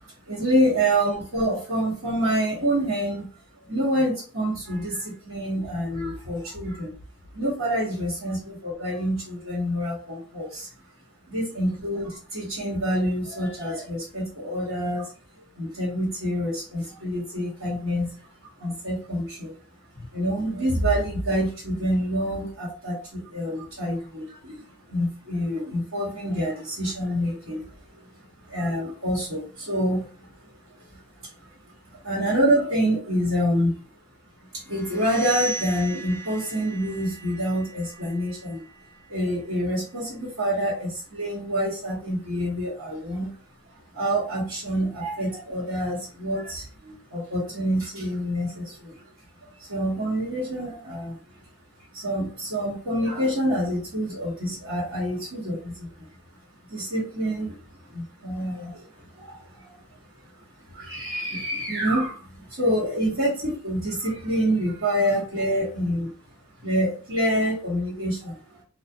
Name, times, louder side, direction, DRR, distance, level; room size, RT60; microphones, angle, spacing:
voice 1, 0.3-3.3 3.6-6.9 7.3-10.7 11.3-15.1 15.6-18.1 18.6-19.5 20.0-24.6 24.9-28.1 28.4-30.3 30.9-31.3 31.9-33.8 34.5-38.6 39.1-43.3 43.9-49.0 49.6-51.2 51.9-55.9 56.7-57.6 57.9-58.8 59.2-59.8 60.7-66.1 66.6-68.4, equal, 65° right, -8 dB, 1.2 m, -27 dB
sound 1, 34.7-40.3, right 2 dB, 10° left, 0.3 m, -38 dB
2.6 x 2.3 x 2.4 m, 0.39 s
head